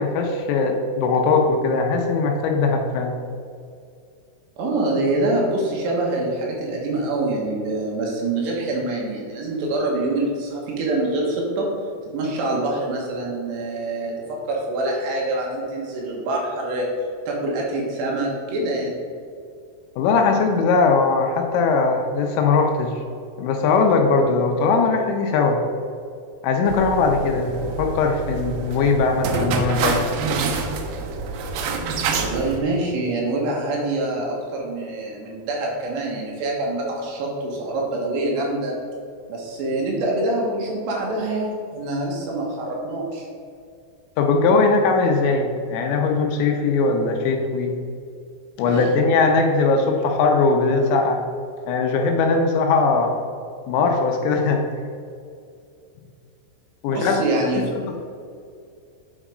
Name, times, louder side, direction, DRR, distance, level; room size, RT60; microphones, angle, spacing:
voice 1, 0.0-3.2 20.0-22.9 23.4-25.6 26.4-30.1 44.2-47.8 48.6-51.2 51.7-53.2 53.7-54.7 56.8-57.2 57.9-58.0, left 4 dB, 80° left, 3 dB, 2.8 m, -20 dB
voice 2, 4.6-11.7 12.1-16.9 17.3-19.0 32.1-38.7 39.3-43.3 48.6-48.9 56.9-57.7, right 2 dB, 70° right, -2 dB, 3.2 m, -25 dB
sound 1, 26.7-32.6, right 4 dB, 90° right, 2.2 m, -27 dB
8.9 x 4.5 x 4.9 m, 2.4 s
omnidirectional pair, 5.5 m